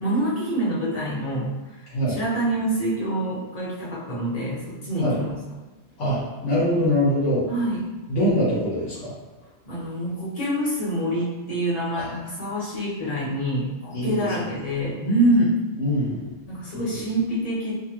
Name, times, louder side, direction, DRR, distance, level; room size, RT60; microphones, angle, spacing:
voice 1, 0.0-1.5 2.1-5.3 7.5-7.8 9.6-15.5 16.5-17.7, right 1 dB, 35° left, -8 dB, 1.0 m, -26 dB
voice 2, 6.0-7.5 8.1-9.1 11.9-12.0 13.9-14.3 15.8-16.3 16.7-17.0, equal, 80° left, -8 dB, 1.1 m, -23 dB
2.8 x 2.4 x 2.9 m, 1.2 s
omnidirectional pair, 1.2 m